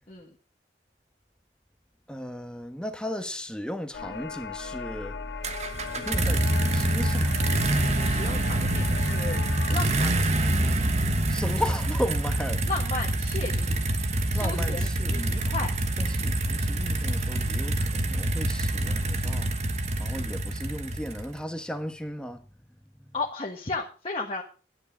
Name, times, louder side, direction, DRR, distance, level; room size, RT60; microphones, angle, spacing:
voice 1, 2.1-5.2 5.9-7.4 11.3-12.6 14.3-15.3 16.0-19.5 20.0-22.4 22.7-23.1, equal, 5° left, 1.3 m, -35 dB
sound 1, 3.9-9.8, left 5 dB, 85° left, 1.1 m, -38 dB
sound 2, 5.4-21.4, right 1 dB, 40° right, 1.2 m, -26 dB
voice 2, 8.1-9.4 9.7-10.2 12.7-13.8 14.3-15.7 20.2-20.4 23.1-24.4, left 3 dB, 35° left, 1.5 m, -34 dB
11.5 x 9.9 x 5.0 m
head